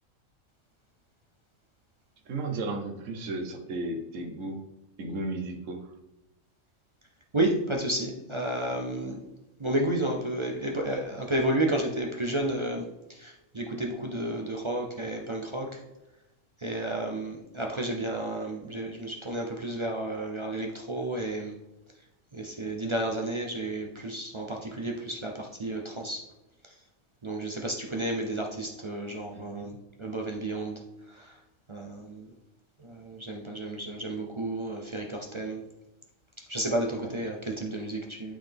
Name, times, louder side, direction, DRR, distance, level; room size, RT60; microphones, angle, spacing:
voice 1, 2.3-4.6 5.0-5.9 29.3-29.8, right 2 dB, 75° right, 4 dB, 1.2 m, -34 dB
voice 2, 7.3-9.2 9.6-15.8 16.6-21.6 22.3-26.2 26.6-26.7 27.2-30.8 31.1-31.4 31.7-32.3 32.8-35.6 36.5-38.4, right 1 dB, 40° right, 1 dB, 0.4 m, -32 dB
8.7 x 3.9 x 3.4 m, 0.96 s
omnidirectional pair, 1.3 m